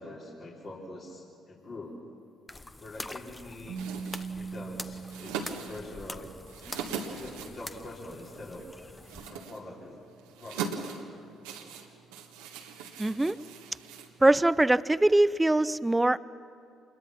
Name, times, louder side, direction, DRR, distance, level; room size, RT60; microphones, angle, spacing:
voice 1, 0.0-2.0 2.8-3.8 4.3-6.3 7.1-8.7 9.3-10.0 10.4-11.0, left 2 dB, 50° left, -4 dB, 3.9 m, -44 dB
sound 1, 2.5-9.3, left 2 dB, 20° left, 1.0 m, -45 dB
Keyboard (musical), 3.7-6.4, right 5 dB, 65° right, 1.1 m, -41 dB
sound 2, 3.7-14.6, right 6 dB, 85° right, 1.6 m, -41 dB
voice 2, 13.0-13.4 14.2-16.2, right 1 dB, 15° right, 17 dB, 0.6 m, -22 dB
26.5 x 21.5 x 5.9 m, 2.4 s
hypercardioid pair, 50°, 0 cm